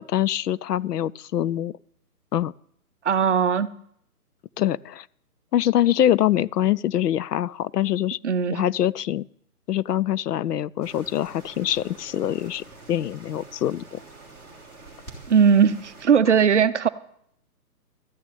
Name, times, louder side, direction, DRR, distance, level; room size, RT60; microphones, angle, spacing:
voice 1, 0.0-1.7 2.3-2.5 4.6-5.1 5.5-8.2 8.5-9.3 9.7-14.0, left 11 dB, 80° left, 0.6 m, -24 dB
voice 2, 3.0-3.7 8.2-8.6 15.3-16.9, right 7 dB, 50° right, 0.6 m, -19 dB
sound 1, 10.8-16.1, right 3 dB, 5° left, 1.8 m, -46 dB
13.0 x 6.2 x 9.1 m
hypercardioid pair, 170°, 47 cm